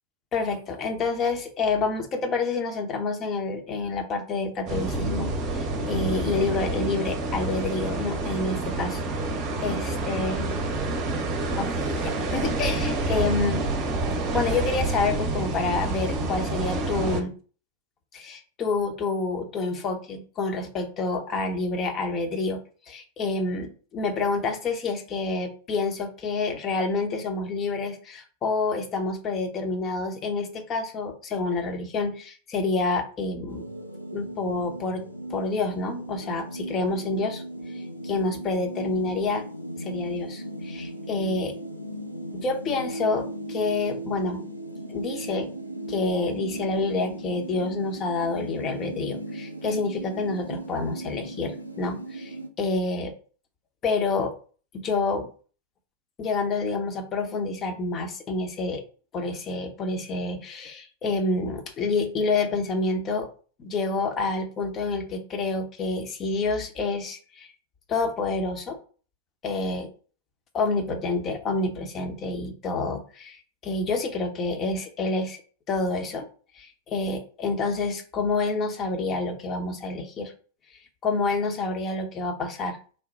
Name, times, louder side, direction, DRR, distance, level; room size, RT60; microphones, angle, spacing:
voice 1, 0.3-9.0 9.6-10.5 11.6-13.7 14.3-17.3 18.1-22.6 22.9-33.7 34.1-35.0 35.3-37.4 37.7-39.5 39.8-41.5 42.3-44.5 44.9-45.5 45.9-53.1 53.8-54.3 54.7-55.3 56.2-58.8 59.1-63.3 63.6-67.5 67.9-68.8 69.4-69.9 70.5-75.4 75.7-76.3 76.6-80.3 81.0-82.8, left 3 dB, 30° left, 5 dB, 0.8 m, -28 dB
sound 1, 4.7-17.2, right 2 dB, 35° right, 0.8 m, -28 dB
sound 2, 33.5-52.5, right 1 dB, 85° left, 0.5 m, -37 dB
3.3 x 2.2 x 4.0 m, 0.39 s
figure-of-eight pair, 90°, 0 cm